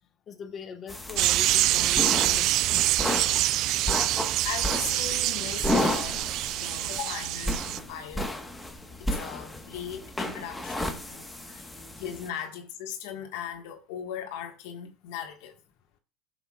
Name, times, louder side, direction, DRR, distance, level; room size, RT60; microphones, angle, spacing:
voice 1, 0.3-2.8, left 6 dB, 35° left, 1.3 m, -41 dB
sound 1, 0.9-12.3, left 1 dB, 10° left, 1.3 m, -33 dB
sound 2, 1.2-7.8, right 15 dB, 55° right, 0.3 m, -26 dB
voice 2, 4.4-8.4 9.0-11.7 12.0-15.6, left 9 dB, 80° left, 1.6 m, -38 dB
17.0 x 7.0 x 2.4 m
supercardioid pair, 120°, 0 cm